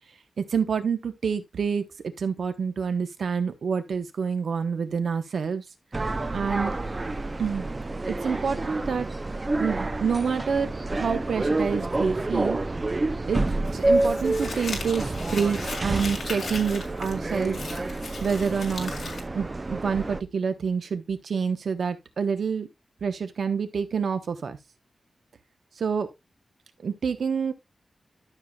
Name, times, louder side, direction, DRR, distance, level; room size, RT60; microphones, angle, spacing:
voice 1, 0.4-5.6 6.3-6.7 7.4-7.7 8.1-9.1 9.6-12.6 13.2-17.6 18.2-22.7 23.0-24.6 25.8-26.1 26.8-27.5, right 6 dB, 70° right, 0.9 m, -28 dB
sound 1, 5.9-20.2, right 2 dB, 25° right, 0.5 m, -28 dB
Crumpling crinkling, 13.7-19.2, left 4 dB, 55° left, 2.5 m, -38 dB
12.5 x 6.9 x 2.3 m
wide cardioid pair, 150°, 0 cm